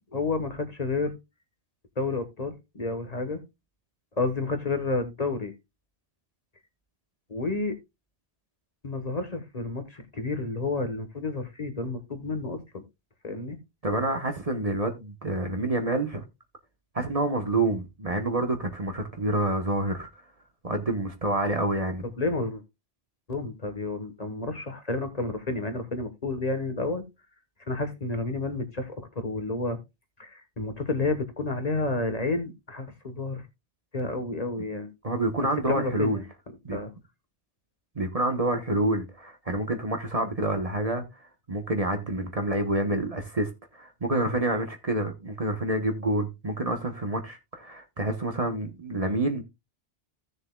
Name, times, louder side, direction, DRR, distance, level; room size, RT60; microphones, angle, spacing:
voice 1, 0.1-1.1 2.0-3.4 4.2-5.5 7.3-7.8 8.8-12.8 13.2-13.6 22.0-22.6 23.3-27.0 27.7-29.8 30.2-33.4 33.9-34.9 35.7-36.2 36.7-36.9, left 3 dB, 35° left, 1.3 m, -30 dB
voice 2, 13.8-16.2 16.9-20.1 20.6-22.1 35.0-36.2 36.6-36.8 37.9-41.0 41.5-49.4, right 2 dB, 35° right, 1.1 m, -28 dB
15.5 x 6.7 x 2.2 m
omnidirectional pair, 1.2 m